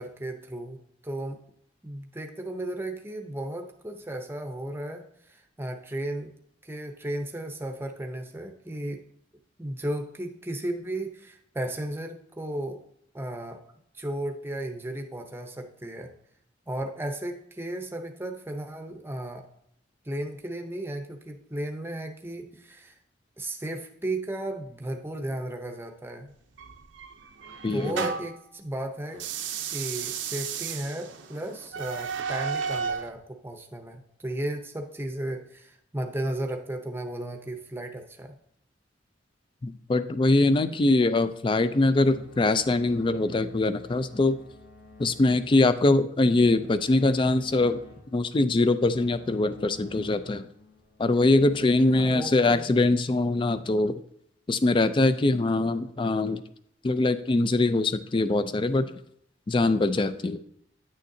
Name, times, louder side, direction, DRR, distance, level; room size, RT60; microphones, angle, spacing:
voice 1, 0.0-1.4 1.8-6.3 6.6-9.0 9.6-12.8 13.1-13.6 13.9-16.1 16.7-19.5 20.0-22.9 23.4-26.3 27.7-29.3 29.7-38.4 51.9-52.7, right 1 dB, 10° right, 4 dB, 0.7 m, -34 dB
sound 1, 26.6-28.4 29.1-33.1, right 6 dB, 75° right, 0.7 m, -33 dB
voice 2, 27.6-28.0 39.6-44.4 45.0-47.8 48.1-50.5 51.0-53.9 54.5-56.4 56.8-58.9 59.5-60.4, left 2 dB, 25° left, 12 dB, 0.4 m, -23 dB
sound 2, 42.1-52.2, left 3 dB, 80° left, 1.9 m, -51 dB
9.4 x 6.4 x 2.7 m, 0.71 s
head